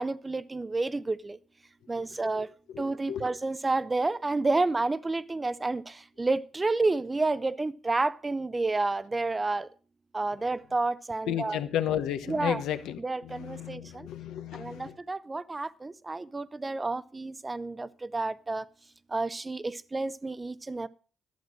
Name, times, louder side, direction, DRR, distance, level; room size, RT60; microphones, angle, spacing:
voice 1, 0.0-1.4 1.9-9.7 10.1-11.6 12.3-12.6 13.0-14.1 14.5-18.7 19.1-20.9, right 3 dB, 20° right, 0.6 m, -30 dB
voice 2, 2.7-3.3 11.3-14.9, left 10 dB, 85° left, 0.9 m, -33 dB
11.5 x 7.4 x 6.2 m
cardioid pair, 90°, 0 cm